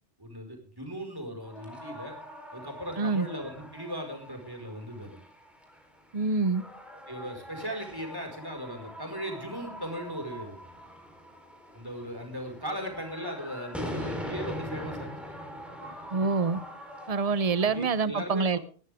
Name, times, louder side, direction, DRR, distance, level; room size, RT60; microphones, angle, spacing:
voice 1, 0.2-2.2 2.5-5.2 7.1-10.6 11.7-15.1 17.6-18.6, equal, 20° right, 3 dB, 5.2 m, -38 dB
sound 1, 1.4-18.0, equal, ahead, 4.1 m, -42 dB
voice 2, 3.0-3.3 6.1-6.6 16.1-16.6 17.1-18.6, right 4 dB, 35° right, 16 dB, 0.8 m, -26 dB
20.5 x 13.5 x 3.6 m, 0.40 s
omnidirectional pair, 1.2 m